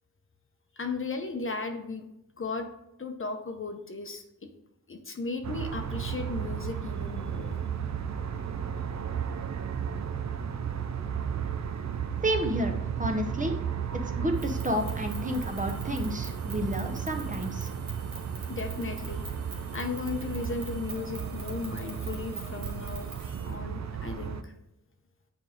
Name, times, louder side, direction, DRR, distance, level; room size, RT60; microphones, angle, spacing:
voice 1, 0.8-2.0 2.4-2.7 3.0-4.5 4.9-7.6 18.5-19.2 19.7-23.1 23.4-24.5, left 4 dB, 40° left, 5 dB, 0.8 m, -36 dB
sound 1, 5.4-24.4, right 7 dB, 55° right, 0.5 m, -34 dB
voice 2, 12.2-13.5 14.2-17.7, equal, 25° right, 4 dB, 0.8 m, -30 dB
sound 2, 14.3-23.5, right 2 dB, 90° right, 1.7 m, -46 dB
7.7 x 4.6 x 3.6 m, 0.88 s
wide cardioid pair, 110°, 34 cm